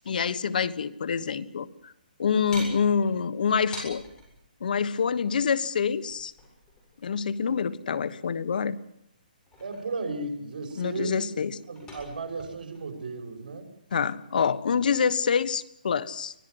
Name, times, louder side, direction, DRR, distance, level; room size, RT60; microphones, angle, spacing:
voice 1, 0.0-1.9 2.2-4.0 4.6-6.3 7.0-8.8 10.8-11.5 13.9-16.3, left 6 dB, 65° left, 17 dB, 1.3 m, -26 dB
sound 1, 2.5-4.3 6.1-7.2 9.2-10.3 10.7-12.9, equal, 15° left, 7.6 m, -45 dB
voice 2, 9.6-11.3 11.7-13.7 14.7-14.8, right 3 dB, 65° right, 5 dB, 6.3 m, -35 dB
24.5 x 18.5 x 8.0 m, 0.73 s
hypercardioid pair, 160°, 5 cm